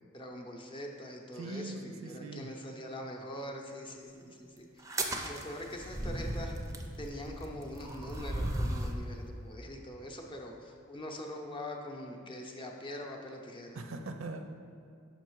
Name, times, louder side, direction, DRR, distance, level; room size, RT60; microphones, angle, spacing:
voice 1, 0.1-6.5 7.0-13.8, left 1 dB, 25° left, 1 dB, 0.6 m, -43 dB
voice 2, 1.4-2.5 13.7-14.5, right 2 dB, 70° right, 6 dB, 0.5 m, -41 dB
sound 1, 4.8-9.0, right 1 dB, 15° right, 0.5 m, -36 dB
5.8 x 5.6 x 4.6 m, 2.4 s
head